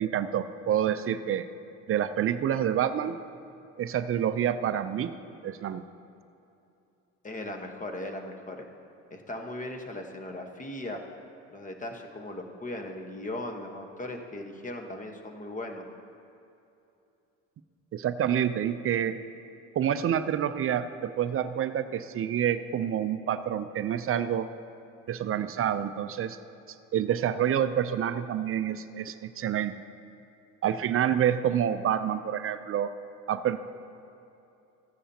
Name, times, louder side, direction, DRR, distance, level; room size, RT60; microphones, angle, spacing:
voice 1, 0.0-1.5 1.9-3.2 3.8-5.1 5.4-5.8 17.9-19.2 19.7-24.5 25.1-26.4 26.9-29.7 30.6-32.9 33.3-33.6, right 9 dB, 40° right, 11 dB, 0.5 m, -28 dB
voice 2, 7.2-8.7 9.1-11.0 11.5-15.8, left 1 dB, 25° left, 4 dB, 1.2 m, -38 dB
14.5 x 9.9 x 2.8 m, 2.8 s
supercardioid pair, 75°, 34 cm